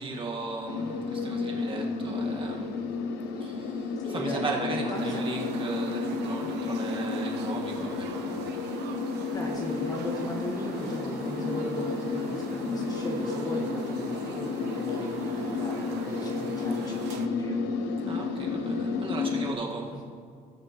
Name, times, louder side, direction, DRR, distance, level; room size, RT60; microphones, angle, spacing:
voice 1, 0.0-2.9 3.3-8.3 18.0-20.0, right 3 dB, 30° right, -1 dB, 1.7 m, -36 dB
sound 1, 0.7-19.5, left 4 dB, 85° left, 0.8 m, -32 dB
voice 2, 4.0-4.5 4.9-5.2 9.3-17.6 19.9-20.1, equal, 20° left, 0 dB, 1.5 m, -38 dB
sound 2, 4.9-17.3, right 8 dB, 85° right, 0.7 m, -42 dB
18.5 x 6.2 x 3.1 m, 2.2 s
cardioid pair, 110°, 17 cm